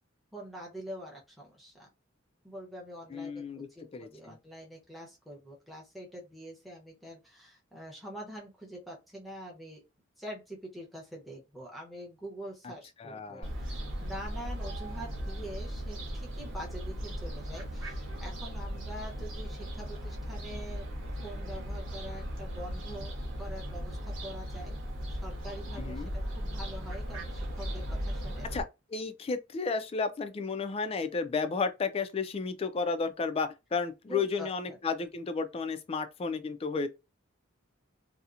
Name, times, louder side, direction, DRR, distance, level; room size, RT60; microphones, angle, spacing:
voice 1, 0.3-1.9 2.4-9.8 10.2-20.8 21.1-24.8 25.1-28.6 34.1-34.8, equal, ahead, 0.7 m, -45 dB
voice 2, 3.1-3.7 3.9-4.4 13.0-13.5 25.8-26.1 28.5-28.6 28.9-36.9, left 4 dB, 30° left, 0.3 m, -32 dB
Fowl, 13.4-28.6, equal, 85° right, 1.0 m, -37 dB
2.7 x 2.1 x 2.4 m
head